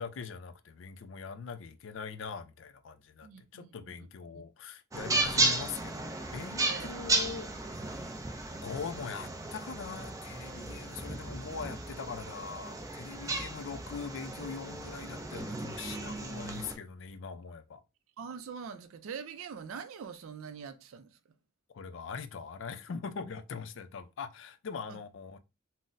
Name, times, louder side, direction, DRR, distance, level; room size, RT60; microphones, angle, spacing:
voice 1, 0.0-8.2 8.6-17.8 21.7-25.4, left 5 dB, 60° left, 0.4 m, -42 dB
voice 2, 3.2-4.1 4.3-4.4 6.7-7.0 18.2-21.2 24.9-25.0, right 6 dB, 80° right, 0.4 m, -44 dB
sound 1, 4.9-16.7, right 2 dB, 15° right, 0.4 m, -34 dB
3.9 x 2.0 x 2.5 m
head